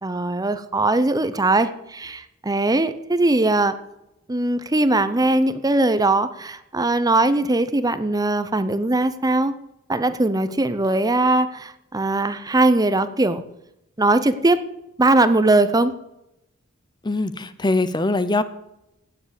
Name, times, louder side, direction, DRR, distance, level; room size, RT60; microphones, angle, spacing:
voice 1, 0.0-3.7 4.3-9.5 9.9-13.4 14.0-14.6 15.0-15.9, right 2 dB, 20° right, 12 dB, 0.7 m, -20 dB
voice 2, 17.0-18.4, left 2 dB, 20° left, 13 dB, 0.7 m, -22 dB
17.0 x 7.4 x 8.3 m, 0.88 s
head